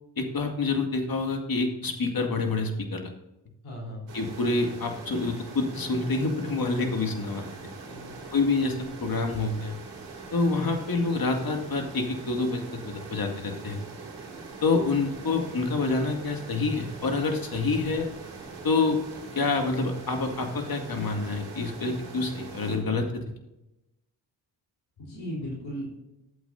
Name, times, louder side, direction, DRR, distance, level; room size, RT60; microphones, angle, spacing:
voice 1, 0.2-3.1 4.1-7.5 8.3-9.8 10.3-13.8 14.6-18.1 18.6-19.0 19.3-23.2, left 3 dB, 45° left, 3 dB, 2.2 m, -27 dB
voice 2, 3.6-4.0 7.9-8.2 25.0-25.9, equal, 85° left, -4 dB, 3.8 m, -36 dB
sound 1, 4.1-22.8, right 4 dB, 85° right, 2.5 m, -42 dB
12.5 x 8.1 x 2.7 m, 0.92 s
supercardioid pair, 45°, 47 cm